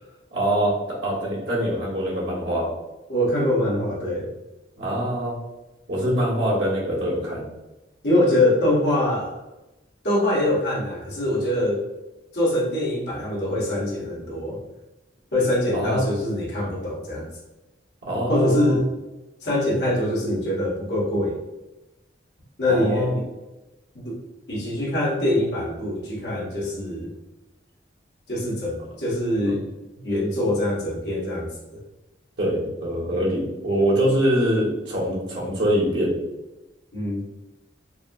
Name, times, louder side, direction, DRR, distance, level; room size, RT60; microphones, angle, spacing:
voice 1, 0.3-2.7 4.8-5.3 5.9-7.4 15.7-16.1 18.0-18.8 22.7-23.1 29.4-29.6 32.4-36.1, equal, 75° right, -5 dB, 1.2 m, -24 dB
voice 2, 3.1-4.3 8.0-9.3 10.0-11.8 12.3-14.6 15.3-17.3 18.3-18.9 19.4-21.4 22.6-23.2 23.9-24.2 24.5-27.1 28.3-29.6 30.0-31.5 36.9-37.2, left 1 dB, 65° left, -5 dB, 1.1 m, -23 dB
4.0 x 2.0 x 2.5 m, 1.0 s
head